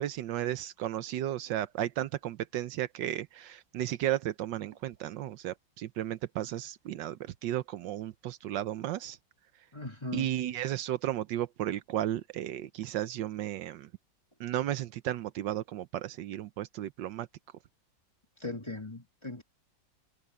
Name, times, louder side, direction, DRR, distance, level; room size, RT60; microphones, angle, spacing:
voice 1, 0.0-9.2 10.1-13.9 14.4-17.3, right 12 dB, 75° right, 1.3 m, -34 dB
voice 2, 9.7-10.3 18.4-19.4, left 2 dB, 15° left, 1.6 m, -39 dB
omnidirectional pair, 2.0 m